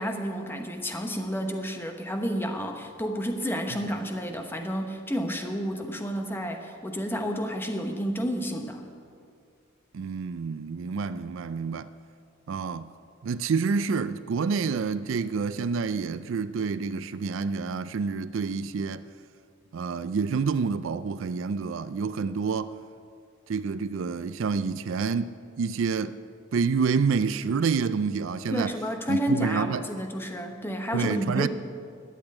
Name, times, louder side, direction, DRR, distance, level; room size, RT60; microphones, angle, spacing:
voice 1, 0.0-8.8 28.5-31.5, equal, 10° left, 1.0 m, -30 dB
voice 2, 9.9-11.9 12.5-12.9 13.2-19.0 19.7-22.7 23.5-26.1 26.5-28.8 29.1-29.8 30.9-31.5, right 5 dB, 65° right, 0.4 m, -28 dB
12.0 x 8.1 x 8.8 m
head